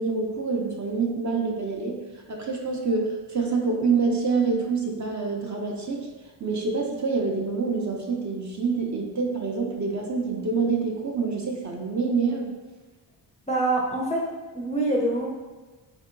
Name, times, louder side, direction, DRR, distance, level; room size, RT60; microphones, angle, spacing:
voice 1, 0.0-2.0 2.3-6.1 6.4-12.5, right 4 dB, 40° right, 1 dB, 0.5 m, -26 dB
voice 2, 13.5-14.3 14.5-15.3, right 2 dB, 15° left, -3 dB, 0.4 m, -25 dB
4.6 x 2.7 x 2.4 m, 1.3 s
wide cardioid pair, 100°, 46 cm